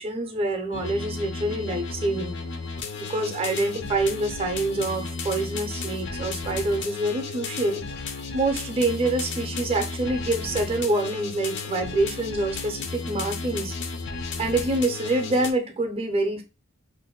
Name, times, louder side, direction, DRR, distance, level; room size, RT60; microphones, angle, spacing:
voice 1, 0.0-2.4 3.0-7.8 8.3-13.7 14.4-16.4, right 2 dB, 25° right, 0.5 m, -26 dB
sound 1, 0.7-15.5, left 4 dB, 55° left, 0.5 m, -34 dB
2.6 x 2.1 x 3.7 m
head